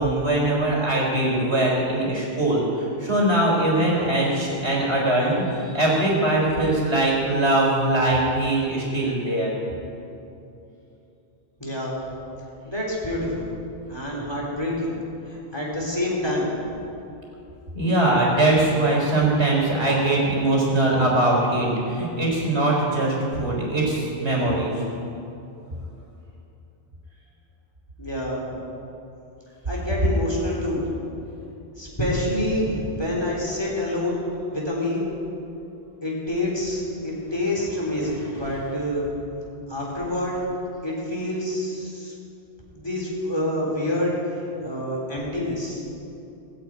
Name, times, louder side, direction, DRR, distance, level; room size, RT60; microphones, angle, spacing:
voice 1, 0.0-9.5 17.7-24.7, right 2 dB, 80° right, -3 dB, 4.4 m, -21 dB
voice 2, 11.6-12.0 12.6-13.5 13.9-14.9 15.3-16.5 28.0-28.5 29.6-30.8 31.8-35.1 36.0-39.1 39.7-40.4 40.8-42.1 42.7-45.8, left 1 dB, 25° left, -4 dB, 3.8 m, -27 dB
19.0 x 8.4 x 8.9 m, 2.8 s
omnidirectional pair, 1.1 m